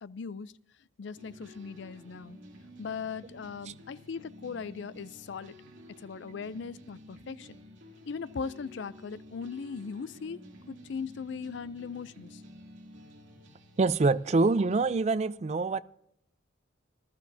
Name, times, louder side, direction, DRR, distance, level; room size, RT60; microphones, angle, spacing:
voice 1, 0.0-0.5 1.0-2.4 2.8-5.5 6.0-7.6 8.1-10.4 10.7-12.3, left 5 dB, 60° left, 0.4 m, -39 dB
sound 1, 1.1-15.0, equal, 65° right, 2.4 m, -52 dB
voice 2, 13.8-15.8, right 3 dB, 35° right, 0.3 m, -25 dB
19.5 x 12.5 x 2.7 m
head